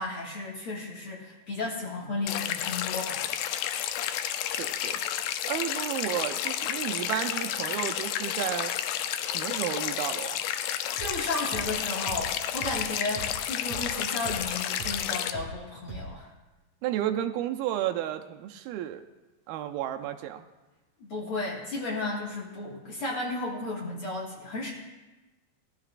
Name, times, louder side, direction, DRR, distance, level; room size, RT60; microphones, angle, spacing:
voice 1, 0.0-3.2 11.0-16.3 21.0-24.7, left 2 dB, 45° left, -4 dB, 2.2 m, -34 dB
sound 1, 2.3-15.3, left 11 dB, 85° left, 1.8 m, -31 dB
voice 2, 4.6-5.0 5.5-8.7 9.2-10.4 16.8-19.0 19.5-20.5, right 11 dB, 85° right, 7 dB, 2.5 m, -32 dB
sound 2, 11.0-15.6 15.9-16.1, right 3 dB, 50° right, 3.9 m, -40 dB
19.0 x 13.0 x 2.5 m, 1.1 s
omnidirectional pair, 4.4 m